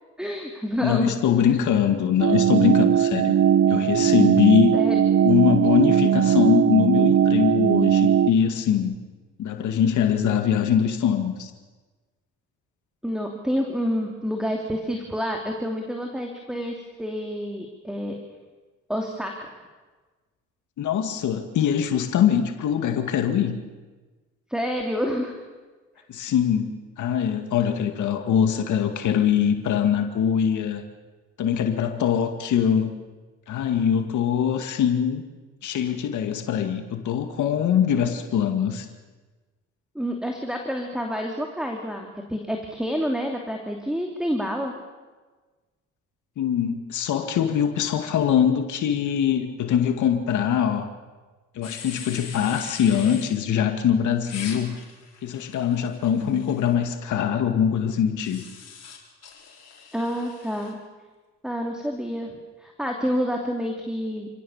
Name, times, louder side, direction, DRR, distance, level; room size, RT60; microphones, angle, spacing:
voice 1, 0.2-1.1 4.7-5.0 13.0-18.2 18.9-19.5 24.5-25.4 37.9-38.1 39.9-44.7 56.2-56.4 59.9-60.8 61.4-64.3, equal, ahead, 2 dB, 2.9 m, -28 dB
voice 2, 0.8-3.3 3.7-4.7 5.2-8.9 9.4-11.5 20.8-23.6 26.1-30.8 31.4-32.9 33.5-35.2 35.6-38.9 46.4-50.9 51.6-54.8 55.2-58.4, left 8 dB, 75° left, 6 dB, 2.2 m, -22 dB
sound 1, 2.2-8.3, right 9 dB, 50° right, 0.7 m, -19 dB
sound 2, 51.6-53.3 54.2-56.7 58.2-60.7, left 6 dB, 55° left, 5.4 m, -42 dB
28.5 x 17.0 x 7.3 m, 1.3 s
cardioid pair, 90°, 30 cm